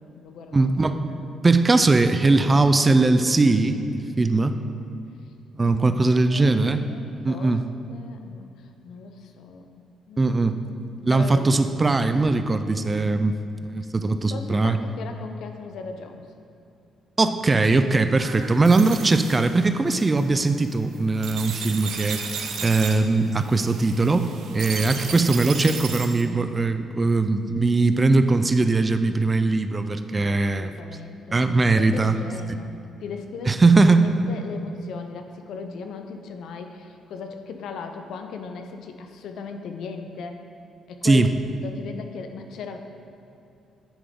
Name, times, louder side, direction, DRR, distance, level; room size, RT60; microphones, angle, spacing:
voice 1, 0.0-0.7 1.3-1.4 5.6-5.9 6.1-7.6 7.9-9.7 10.1-10.3 11.1-11.9 14.0-16.3 30.2-32.7 33.0-40.4 40.9-41.3 41.6-42.8, left 5 dB, 75° left, 6 dB, 0.6 m, -38 dB
voice 2, 0.5-1.2 1.4-4.6 5.5-6.8 7.2-7.6 10.2-10.6 11.0-13.4 13.7-14.8 17.2-24.3 24.5-30.7 31.3-32.2 33.5-34.1 41.0-41.3, right 3 dB, 25° right, 9 dB, 0.4 m, -20 dB
sound 1, 18.2-26.3, right 6 dB, 75° right, 0.7 m, -35 dB
9.8 x 3.7 x 5.2 m, 2.6 s
cardioid pair, 90°, 0 cm